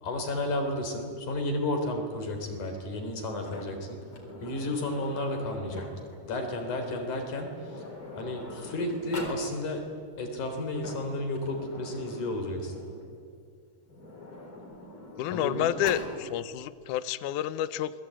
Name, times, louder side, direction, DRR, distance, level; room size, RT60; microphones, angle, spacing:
voice 1, 0.0-4.0 4.4-5.9 6.3-7.9 8.2-9.8 10.2-12.7 15.3-15.7, left 1 dB, 50° left, 5 dB, 4.8 m, -32 dB
Sliding door, 3.4-6.2 7.2-7.3 7.6-9.4 10.5-13.1 13.9-16.1, left 2 dB, 35° left, 4.7 m, -43 dB
voice 2, 15.2-17.9, left 12 dB, 80° left, 14 dB, 1.8 m, -29 dB
28.0 x 21.5 x 9.0 m, 2.3 s
omnidirectional pair, 4.5 m